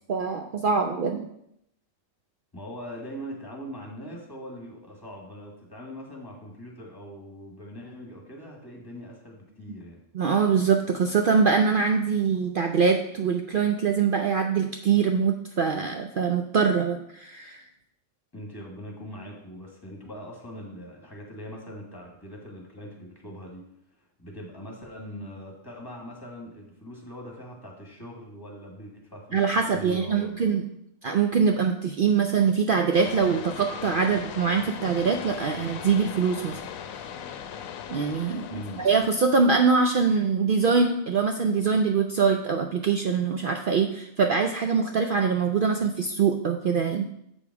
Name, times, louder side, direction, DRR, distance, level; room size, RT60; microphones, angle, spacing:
voice 1, 0.1-1.3 10.1-17.6 29.3-30.6 31.0-36.6 37.9-47.1, right 5 dB, 70° right, 4 dB, 0.5 m, -23 dB
voice 2, 2.5-10.0 18.3-23.6 24.2-30.6 38.5-38.8, equal, 15° left, -1 dB, 1.6 m, -41 dB
sound 1, 32.9-39.1, left 8 dB, 85° left, 1.0 m, -39 dB
7.3 x 5.1 x 4.7 m, 0.77 s
omnidirectional pair, 1.4 m